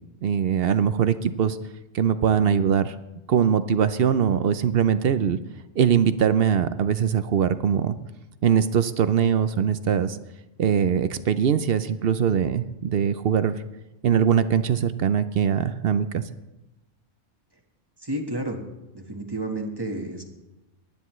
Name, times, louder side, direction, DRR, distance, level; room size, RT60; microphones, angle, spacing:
voice 1, 0.2-1.6 1.9-3.0 3.3-5.4 5.8-8.0 8.4-10.2 10.6-13.6 14.0-16.2, right 8 dB, 60° right, 13 dB, 0.7 m, -22 dB
voice 2, 18.0-18.6 18.9-20.2, right 1 dB, 20° right, 3 dB, 1.3 m, -31 dB
19.0 x 12.0 x 3.1 m, 1.0 s
omnidirectional pair, 1.3 m